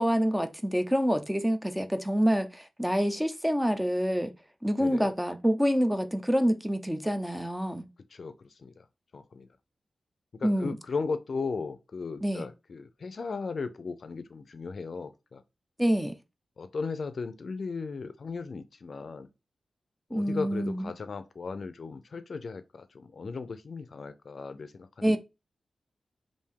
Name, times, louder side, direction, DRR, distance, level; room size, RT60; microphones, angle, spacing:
voice 1, 0.0-4.3 4.6-7.9 10.4-10.8 12.2-12.5 15.8-16.1 20.1-20.9 25.0-25.2, equal, 5° right, 0.6 m, -27 dB
voice 2, 4.8-5.1 8.1-8.9 9.1-9.5 10.3-15.4 16.6-19.3 20.1-25.2, left 4 dB, 60° left, 0.5 m, -36 dB
3.5 x 2.6 x 4.5 m
wide cardioid pair, 90°, 0 cm